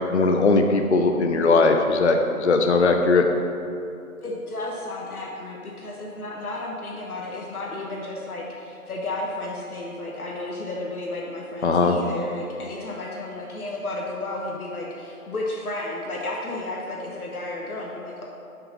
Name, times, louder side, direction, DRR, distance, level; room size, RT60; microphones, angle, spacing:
voice 1, 0.1-3.3 11.6-12.0, left 3 dB, 55° left, 4 dB, 0.5 m, -19 dB
voice 2, 4.2-18.2, left 2 dB, 80° left, -2 dB, 1.2 m, -32 dB
5.7 x 5.3 x 5.5 m, 2.6 s
hypercardioid pair, 175°, 43 cm